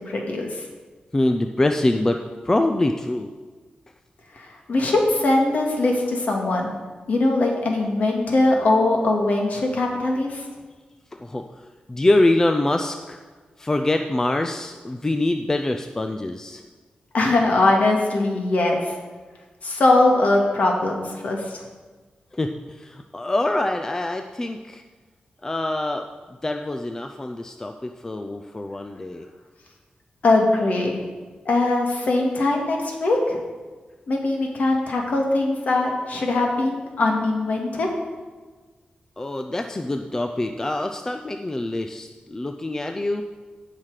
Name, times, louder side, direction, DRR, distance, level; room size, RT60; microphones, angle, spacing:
voice 1, 0.1-0.6 4.3-6.8 7.1-10.4 17.1-18.9 19.6-21.6 30.2-31.0 31.5-33.4 34.1-37.9, left 2 dB, 55° left, 0 dB, 2.0 m, -21 dB
voice 2, 1.1-3.3 11.1-13.2 13.6-16.6 22.3-24.8 25.4-26.1 26.4-29.3 39.2-43.2, left 2 dB, 15° left, 5 dB, 0.4 m, -24 dB
17.0 x 5.9 x 4.9 m, 1.4 s
wide cardioid pair, 165°, 3 cm